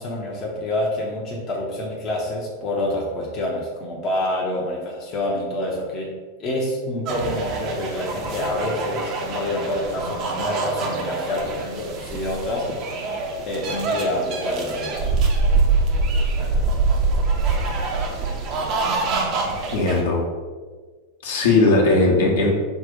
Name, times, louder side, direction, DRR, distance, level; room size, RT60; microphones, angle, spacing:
voice 1, 0.0-6.1 6.4-12.7 13.5-15.1, left 1 dB, 30° left, -3 dB, 0.7 m, -27 dB
sound 1, 7.1-20.0, right 3 dB, 40° right, 0.7 m, -24 dB
voice 2, 19.7-20.2 21.2-22.5, left 2 dB, 60° left, -2 dB, 0.9 m, -18 dB
5.0 x 2.4 x 3.8 m, 1.4 s
figure-of-eight pair, 90°, 0 cm